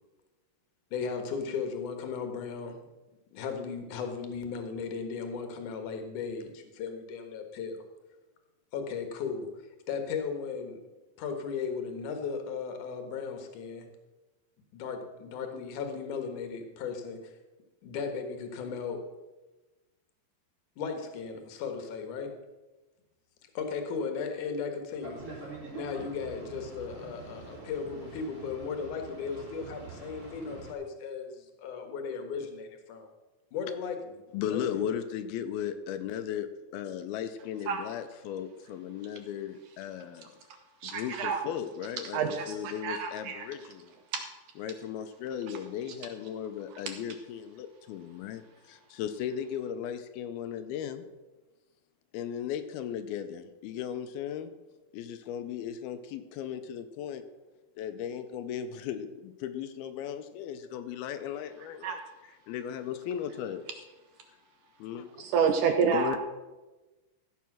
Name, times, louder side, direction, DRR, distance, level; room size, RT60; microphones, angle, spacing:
voice 1, 0.9-2.8 3.3-7.8 8.7-9.5 9.9-10.8 11.2-13.9 14.7-17.3 17.8-19.0 20.8-22.3 23.5-25.2 25.7-33.1 33.5-34.0 34.4-34.9, left 5 dB, 60° left, 5 dB, 2.6 m, -36 dB
Boat Water vehicle, 25.0-30.7, right 3 dB, 25° right, 3.6 m, -45 dB
voice 2, 34.3-40.4 40.8-43.9 44.6-51.1 52.1-54.5 54.9-57.2 57.8-62.0 62.5-63.6 64.8-65.3 65.8-66.2, left 9 dB, 85° left, 9 dB, 2.6 m, -36 dB
voice 3, 40.8-41.4 42.1-43.5 44.1-44.2 61.8-62.0 65.2-66.2, right 7 dB, 80° right, 6 dB, 1.9 m, -28 dB
15.0 x 7.4 x 6.1 m, 1.1 s
omnidirectional pair, 4.6 m